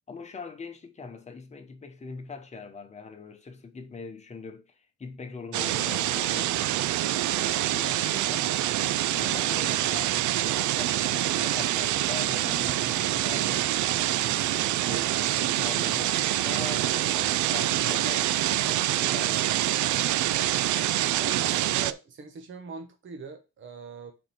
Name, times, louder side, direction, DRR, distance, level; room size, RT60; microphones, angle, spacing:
voice 1, 0.1-4.7 5.0-6.7 7.7-8.5 9.1-10.2 10.4-13.7 14.1-16.2 16.4-19.7, left 4 dB, 20° left, 1.0 m, -42 dB
sound 1, 5.5-21.9, right 14 dB, 70° right, 0.4 m, -26 dB
voice 2, 21.1-24.1, right 5 dB, 40° right, 1.1 m, -41 dB
5.0 x 4.4 x 5.8 m
cardioid pair, 165°, 31 cm